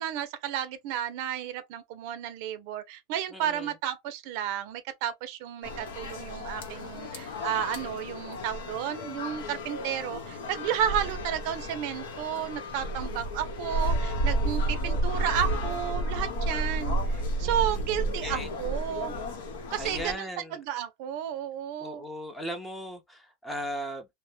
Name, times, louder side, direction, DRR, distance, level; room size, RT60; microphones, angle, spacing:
voice 1, 0.0-19.1 19.7-22.0, right 10 dB, 60° right, 0.5 m, -32 dB
voice 2, 3.3-3.7 10.7-11.0 17.4-18.5 19.8-20.6 21.8-24.1, equal, 5° left, 0.6 m, -38 dB
sound 1, 5.6-20.2, right 1 dB, 90° left, 0.9 m, -32 dB
2.1 x 2.0 x 3.1 m
supercardioid pair, 145°, 0 cm